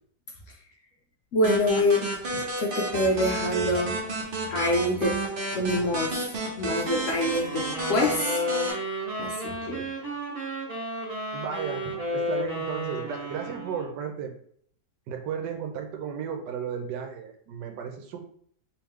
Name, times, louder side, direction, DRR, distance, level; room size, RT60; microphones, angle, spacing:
voice 1, 1.3-2.2 2.6-4.0 4.5-5.2 5.5-8.4 9.2-9.9, left 1 dB, 65° left, 0 dB, 0.8 m, -26 dB
sound 1, 1.4-8.7, right 2 dB, 45° right, 0.7 m, -31 dB
sound 2, 7.2-14.0, equal, 25° right, 1.7 m, -32 dB
voice 2, 11.3-14.3 15.1-18.2, right 7 dB, 90° right, 4 dB, 1.3 m, -34 dB
3.5 x 3.1 x 3.1 m, 0.62 s
omnidirectional pair, 1.8 m